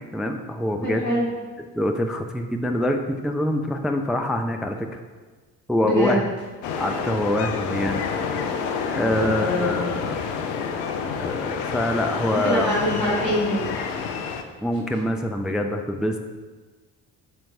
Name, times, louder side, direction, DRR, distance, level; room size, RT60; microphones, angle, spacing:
voice 1, 0.1-1.1 1.7-5.0 5.7-6.2 6.8-8.0 8.9-10.2 11.0-12.7 14.6-16.2, left 1 dB, ahead, 4 dB, 0.4 m, -25 dB
voice 2, 0.8-1.3 5.8-6.2 9.1-9.8 12.4-13.8 14.7-14.8, equal, 85° left, -6 dB, 1.9 m, -24 dB
sound 1, 6.6-14.4, left 6 dB, 65° left, 0.8 m, -28 dB
12.0 x 4.5 x 2.7 m, 1.4 s
figure-of-eight pair, 50°, 48 cm